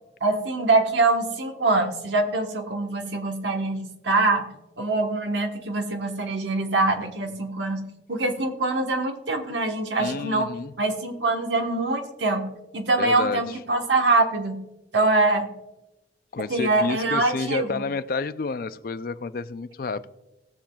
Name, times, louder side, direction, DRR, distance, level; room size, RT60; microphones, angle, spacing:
voice 1, 0.2-4.5 4.8-7.8 8.1-10.5 10.8-12.5 12.7-14.6 14.9-15.5 16.5-17.8, right 2 dB, 90° right, 4 dB, 1.3 m, -24 dB
voice 2, 10.0-10.7 13.0-13.4 16.3-20.1, left 4 dB, 55° left, 13 dB, 0.4 m, -30 dB
18.0 x 7.3 x 2.3 m, 0.99 s
head